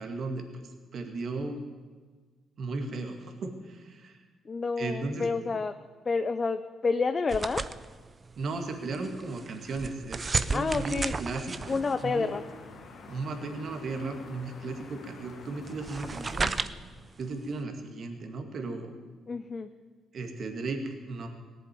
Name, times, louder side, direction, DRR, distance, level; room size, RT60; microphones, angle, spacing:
voice 1, 0.0-1.6 2.6-4.2 4.8-5.3 8.4-12.3 13.1-16.5 17.2-18.9 20.1-21.3, right 3 dB, 55° right, 4 dB, 2.1 m, -36 dB
voice 2, 4.4-5.8 6.0-7.6 10.5-11.1 11.7-12.4 19.3-19.7, left 4 dB, 35° left, 9 dB, 0.6 m, -29 dB
sound 1, 7.3-17.6, right 4 dB, 30° right, 0.6 m, -35 dB
sound 2, 11.7-16.7, left 5 dB, 70° left, 1.6 m, -49 dB
18.0 x 7.9 x 9.4 m, 1.4 s
cardioid pair, 90°, 0 cm